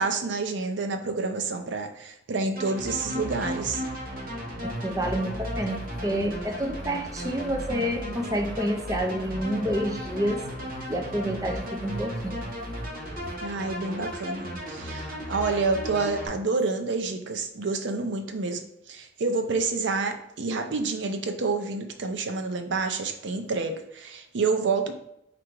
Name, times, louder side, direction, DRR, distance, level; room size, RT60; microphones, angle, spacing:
voice 1, 0.0-3.8 13.4-18.6 18.9-24.9, right 4 dB, 85° right, 6 dB, 0.6 m, -28 dB
sound 1, 2.6-16.3, equal, 55° right, 1.0 m, -35 dB
voice 2, 4.6-10.4 10.9-12.5, equal, 20° right, 3 dB, 0.5 m, -29 dB
4.6 x 2.5 x 4.5 m, 0.78 s
head